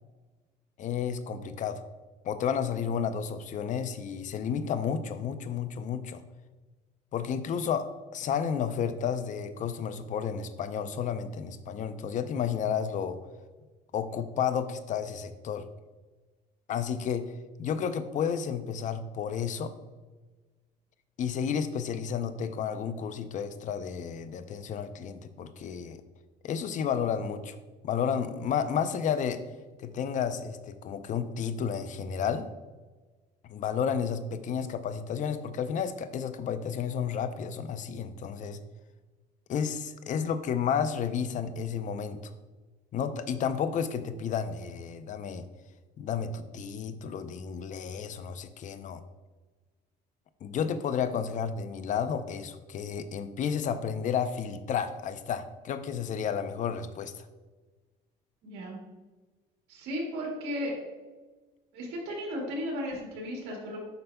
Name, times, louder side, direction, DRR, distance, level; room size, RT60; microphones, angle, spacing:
voice 1, 0.8-1.8 2.2-6.2 7.1-13.2 13.9-15.7 16.7-17.3 17.6-19.7 21.2-26.0 26.4-27.6 27.8-29.4 29.8-32.5 33.5-38.6 39.5-42.2 42.9-45.5 46.0-49.0 50.4-57.3, left 7 dB, 50° left, 11 dB, 0.5 m, -31 dB
voice 2, 58.4-58.8 59.7-60.8 61.7-63.8, equal, 85° right, -2 dB, 1.7 m, -35 dB
7.9 x 5.4 x 2.2 m, 1.3 s
cardioid pair, 110°, 17 cm